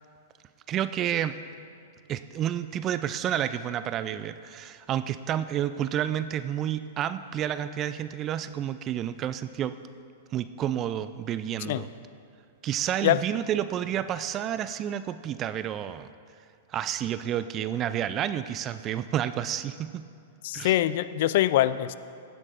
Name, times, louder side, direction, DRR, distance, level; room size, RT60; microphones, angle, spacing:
voice 1, 0.7-1.4 2.1-9.7 10.3-11.9 12.6-16.1 16.7-20.1 20.5-20.8, right 10 dB, 30° right, 13 dB, 0.3 m, -30 dB
voice 2, 20.4-22.0, left 14 dB, 60° left, 15 dB, 0.3 m, -23 dB
15.5 x 9.8 x 2.5 m, 2.4 s
hypercardioid pair, 115°, 0 cm